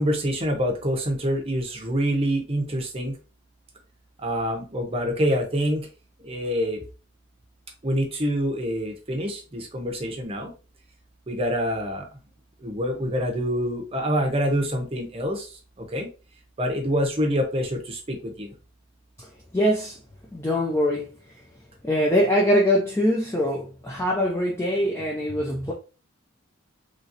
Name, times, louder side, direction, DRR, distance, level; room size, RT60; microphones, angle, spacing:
voice 1, 0.0-3.2 4.2-5.9 6.2-6.8 7.8-10.5 11.3-12.1 12.6-16.1 16.6-18.5, equal, 30° right, 0.7 m, -26 dB
voice 2, 19.5-20.0 20.3-21.1 21.8-25.7, equal, 10° left, 0.4 m, -23 dB
3.0 x 2.8 x 2.5 m
head